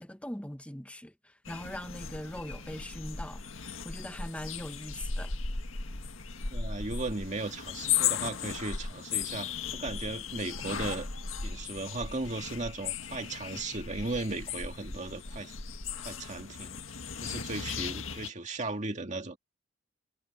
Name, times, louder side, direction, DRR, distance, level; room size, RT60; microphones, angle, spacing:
voice 1, 0.0-5.3, left 1 dB, 5° left, 1.2 m, -41 dB
sound 1, 1.4-18.3, left 6 dB, 85° left, 1.8 m, -36 dB
voice 2, 6.5-11.1 11.4-15.5 16.0-16.8 17.2-19.4, right 2 dB, 35° right, 2.1 m, -36 dB
head